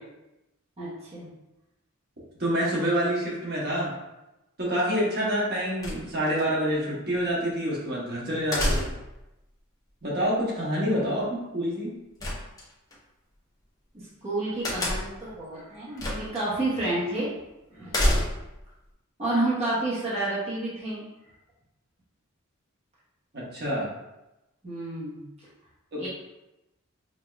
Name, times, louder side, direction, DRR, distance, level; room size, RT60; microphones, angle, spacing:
voice 1, 0.8-1.3 13.9-17.3 17.7-18.2 19.2-21.0 24.6-25.2 26.0-26.1, right 2 dB, 30° right, -9 dB, 1.1 m, -30 dB
voice 2, 2.4-3.9 4.6-8.9 10.0-12.0 23.3-23.9 25.9-26.1, equal, 50° right, -6 dB, 1.2 m, -27 dB
sound 1, 5.8-6.4 8.5-9.2 12.2-13.0 14.6-15.3 16.0-16.4 16.8-16.9 17.9-18.6, left 1 dB, 15° left, 0.8 m, -27 dB
5.1 x 2.8 x 2.3 m, 0.96 s
head